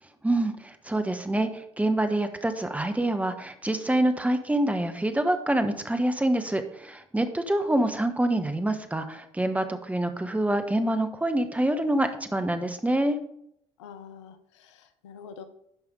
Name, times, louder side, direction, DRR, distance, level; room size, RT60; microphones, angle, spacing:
voice 1, 0.2-13.2, right 1 dB, 10° right, 8 dB, 1.2 m, -26 dB
voice 2, 13.8-15.4, left 6 dB, 80° left, 9 dB, 0.8 m, -46 dB
9.1 x 5.6 x 5.0 m, 0.73 s
hypercardioid pair, 55°, 15 cm